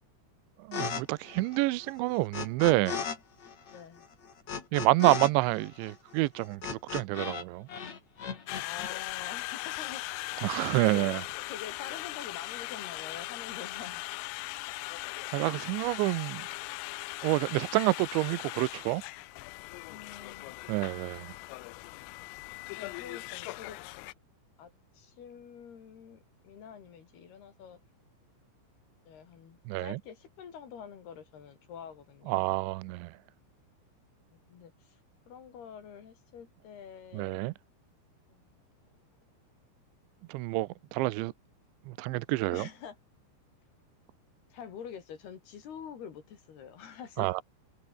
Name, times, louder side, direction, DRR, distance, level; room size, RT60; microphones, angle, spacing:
voice 1, 0.6-3.0 4.7-7.7 10.4-11.2 15.3-16.5 17.2-19.0 20.7-21.3 29.7-30.0 32.3-33.2 37.1-37.5 40.3-41.3 41.9-42.7 47.2-47.4, right 20 dB, 80° right, 2.8 m, -28 dB
sound 1, 0.7-1.0 1.3-3.2 3.4-7.4 7.7-8.9, left 6 dB, 40° left, 3.6 m, -36 dB
voice 2, 3.7-4.0 8.6-11.2 11.5-14.0 19.9-20.6 22.8-24.0 24.6-27.8 29.1-32.6 34.3-35.0 35.3-37.4 38.3-38.6 41.0-41.1 42.5-43.0 44.5-47.3, left 8 dB, 55° left, 4.6 m, -47 dB
Conversation, 8.5-24.1, left 21 dB, 85° left, 3.4 m, -39 dB
omnidirectional pair, 5.8 m